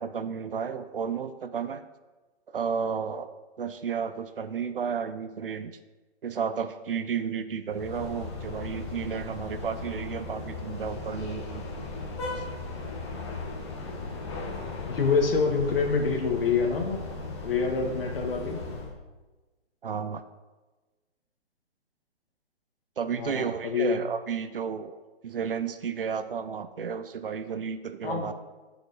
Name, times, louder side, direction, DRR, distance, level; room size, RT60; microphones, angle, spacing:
voice 1, 0.0-1.8 2.5-3.3 3.6-5.7 6.2-11.6 12.4-12.5 12.8-12.9 19.8-20.2 23.0-25.0 25.2-28.3, right 6 dB, 55° right, 11 dB, 0.6 m, -32 dB
sound 1, 7.7-18.9, left 3 dB, 25° left, 1.1 m, -37 dB
voice 2, 14.9-17.0 17.4-18.6 23.1-24.0 28.0-28.3, left 5 dB, 55° left, 3 dB, 1.7 m, -26 dB
15.0 x 5.1 x 4.0 m, 1.2 s
hypercardioid pair, 170°, 34 cm